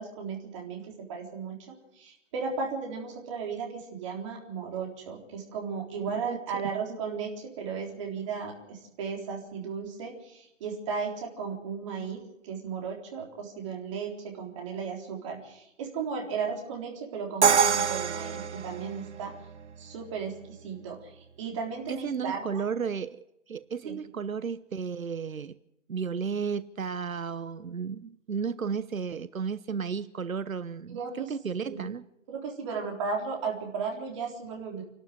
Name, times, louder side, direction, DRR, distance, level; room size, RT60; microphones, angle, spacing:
voice 1, 0.0-1.6 1.9-19.3 19.8-22.6 23.8-24.0 30.9-31.3 31.6-31.8 32.3-34.8, right 5 dB, 25° right, 1 dB, 3.8 m, -35 dB
voice 2, 6.0-6.4 21.9-25.6 25.9-32.0, right 6 dB, 85° right, 16 dB, 1.0 m, -33 dB
Crash cymbal, 17.4-19.3, right 6 dB, 60° right, 0.9 m, -25 dB
28.0 x 12.5 x 7.9 m, 0.85 s
hypercardioid pair, 160°, 40 cm